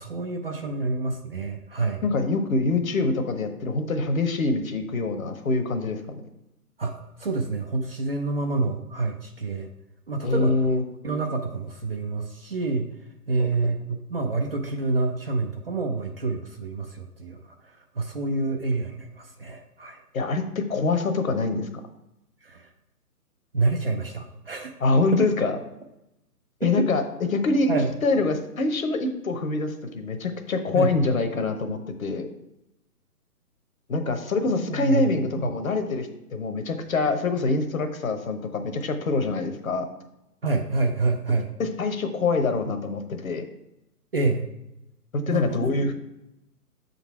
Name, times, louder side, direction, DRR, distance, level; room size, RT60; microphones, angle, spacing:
voice 1, 0.0-2.0 6.8-9.7 10.1-10.6 11.0-12.9 13.3-20.0 22.4-22.7 23.5-24.7 25.1-25.3 26.6-26.9 27.7-27.9 30.7-30.9 34.6-35.6 40.4-41.5 44.1-44.5 45.3-45.9, right 3 dB, 40° right, 3 dB, 0.5 m, -28 dB
voice 2, 2.0-6.2 10.2-10.8 13.4-13.5 20.1-21.7 24.8-25.6 26.6-27.0 27.3-27.7 28.0-32.3 33.9-39.9 41.6-43.5 45.1-45.9, left 3 dB, 60° left, 7 dB, 1.0 m, -25 dB
7.0 x 4.0 x 4.4 m, 0.89 s
figure-of-eight pair, 140°, 47 cm